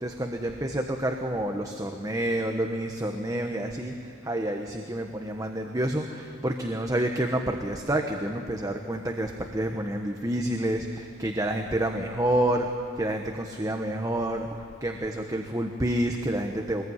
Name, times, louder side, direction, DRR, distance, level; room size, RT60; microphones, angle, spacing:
voice 1, 0.0-12.7 12.9-14.5 14.8-16.8, right 1 dB, 15° right, 3 dB, 1.2 m, -28 dB
24.0 x 21.0 x 9.6 m, 2.5 s
head